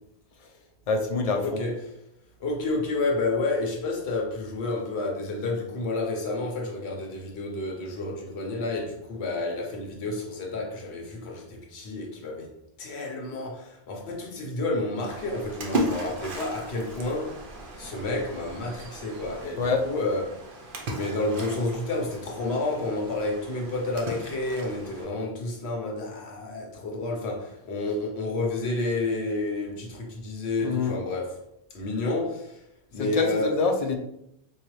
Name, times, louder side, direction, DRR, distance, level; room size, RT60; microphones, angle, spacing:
voice 1, 0.9-1.6 19.6-19.8 30.6-31.0 33.0-33.9, left 4 dB, 55° left, 0.4 m, -25 dB
voice 2, 1.4-1.8 2.4-12.5 12.8-17.4 17.8-20.2 20.9-31.4 31.7-32.6 32.9-33.6, left 2 dB, 75° left, 1.1 m, -30 dB
Splash splatter, 15.1-25.0, right 1 dB, 55° right, 0.8 m, -36 dB
3.8 x 2.7 x 3.0 m
omnidirectional pair, 1.1 m